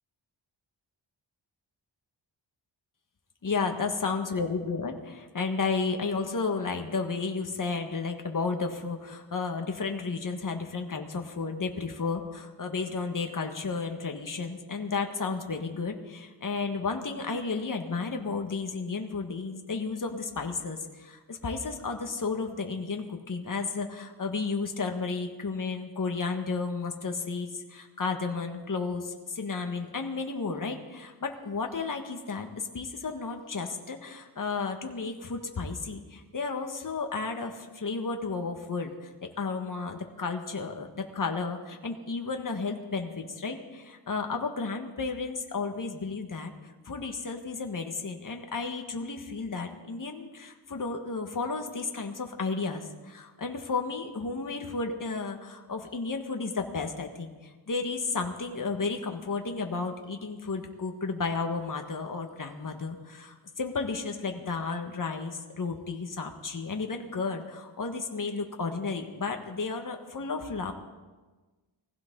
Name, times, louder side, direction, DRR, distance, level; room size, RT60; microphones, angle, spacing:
voice 1, 3.4-70.7, left 4 dB, 45° left, 4 dB, 1.7 m, -33 dB
20.5 x 16.0 x 4.0 m, 1.3 s
wide cardioid pair, 80°, 44 cm